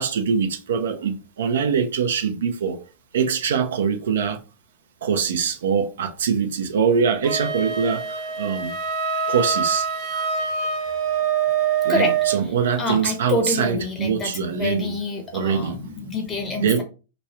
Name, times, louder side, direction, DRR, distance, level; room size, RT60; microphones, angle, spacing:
voice 1, 0.0-2.8 3.1-4.4 5.0-8.7 9.3-9.9 11.8-14.9 15.3-15.8 16.6-16.8, right 6 dB, 80° right, 0.6 m, -23 dB
Wind instrument woodwind instrument, 7.2-12.4, right 7 dB, 40° right, 0.9 m, -24 dB
voice 2, 12.8-16.8, left 2 dB, 25° left, 1.0 m, -27 dB
3.1 x 2.3 x 4.1 m
hypercardioid pair, 115°, 0 cm